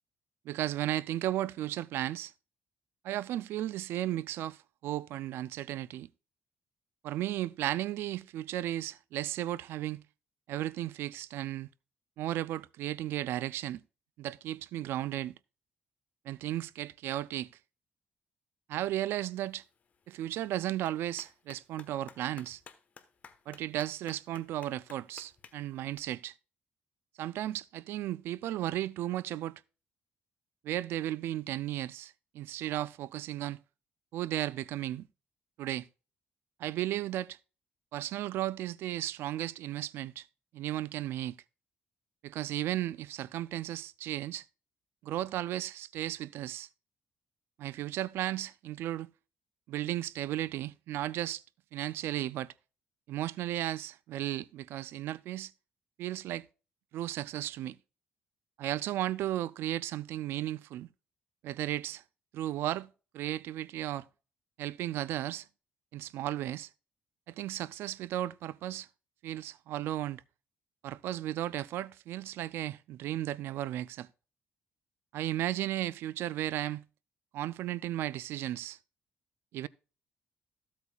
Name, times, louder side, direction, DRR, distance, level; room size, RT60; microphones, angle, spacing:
voice 1, 0.5-2.3 3.0-6.1 7.0-10.0 10.5-11.7 12.2-13.8 14.2-15.3 16.3-17.5 18.7-19.6 20.1-22.6 23.5-26.3 27.2-29.6 30.6-33.6 34.1-35.0 35.6-35.9 36.6-37.4 37.9-40.3 40.5-41.4 42.2-44.4 45.0-46.7 47.6-49.1 49.7-51.4 51.7-52.5 53.1-55.5 56.0-56.5 56.9-57.8 58.6-60.9 61.4-62.0 62.3-62.9 63.1-64.1 64.6-65.5 65.9-66.7 67.3-68.9 69.2-70.2 70.8-74.1 75.1-76.8 77.3-78.8 79.5-79.7, right 13 dB, 75° right, 0.3 m, -35 dB
Clapping, 19.4-26.0, left 6 dB, 35° left, 1.1 m, -57 dB
14.5 x 8.3 x 2.3 m
cardioid pair, 130°, 4 cm